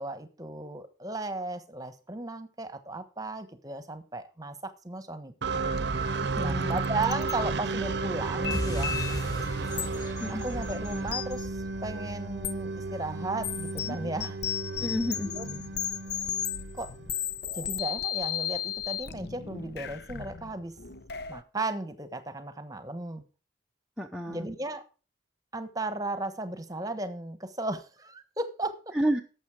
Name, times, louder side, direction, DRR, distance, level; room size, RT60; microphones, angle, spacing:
voice 1, 0.0-5.8 6.4-9.0 10.3-14.4 15.4-15.5 16.7-16.9 17.5-20.7 21.3-23.2 24.3-24.8 25.5-28.9, right 2 dB, 20° right, 11 dB, 1.2 m, -35 dB
sound 1, 5.4-17.2, right 3 dB, 60° right, 0.7 m, -33 dB
sound 2, 5.8-5.9 6.1-7.3 8.4-9.2 9.8-9.9 11.1-11.3 12.4-12.5 13.4-21.4, left 9 dB, 55° left, 0.7 m, -35 dB
voice 2, 6.4-6.8 10.2-10.4 14.8-15.3 24.0-24.5 28.9-29.2, equal, 5° right, 1 dB, 0.6 m, -30 dB
sound 3, 8.5-13.4, equal, 20° left, 3.5 m, -38 dB
12.0 x 7.3 x 4.8 m, 0.35 s
head